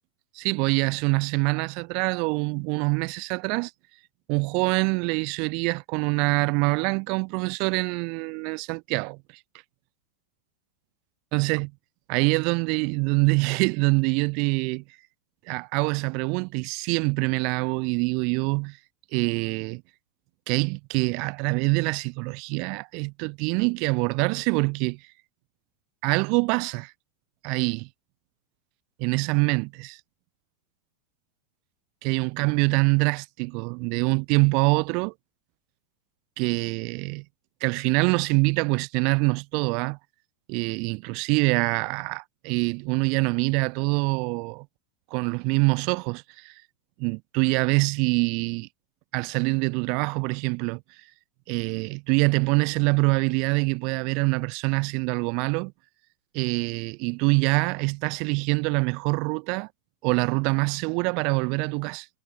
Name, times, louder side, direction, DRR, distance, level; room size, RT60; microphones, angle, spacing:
voice 1, 0.4-3.7 4.3-9.2 11.3-11.7 12.1-14.8 15.5-18.8 19.1-19.8 20.5-25.0 26.0-26.9 27.4-27.9 29.0-30.0 32.0-35.1 36.4-37.2 37.6-40.0 40.5-44.7 45.1-46.5 47.0-48.7 49.1-50.8 51.5-55.7 56.3-59.7 60.0-62.1, right 33 dB, 45° right, 0.4 m, -25 dB
figure-of-eight pair, 90°, 0 cm